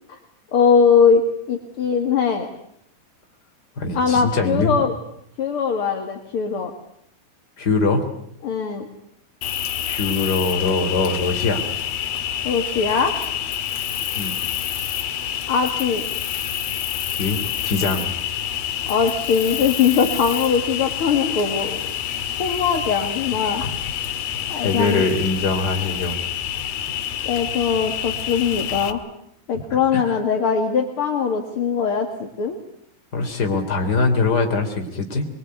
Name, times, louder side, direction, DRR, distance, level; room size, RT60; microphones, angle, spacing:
voice 1, 0.5-2.5 3.9-4.9 5.4-6.7 8.4-8.9 12.4-13.1 15.5-16.0 18.9-21.8 22.4-23.6 24.5-25.0 27.2-29.0 29.5-32.6, left 6 dB, 40° left, 4 dB, 2.3 m, -21 dB
voice 2, 3.8-4.8 7.6-8.1 9.9-11.6 14.1-14.4 17.1-18.1 24.6-26.2 29.7-30.2 33.1-35.3, left 3 dB, 25° left, 4 dB, 3.7 m, -22 dB
Cricket, 9.4-28.9, left 10 dB, 70° left, 3.3 m, -27 dB
24.5 x 23.0 x 9.5 m, 0.72 s
omnidirectional pair, 4.6 m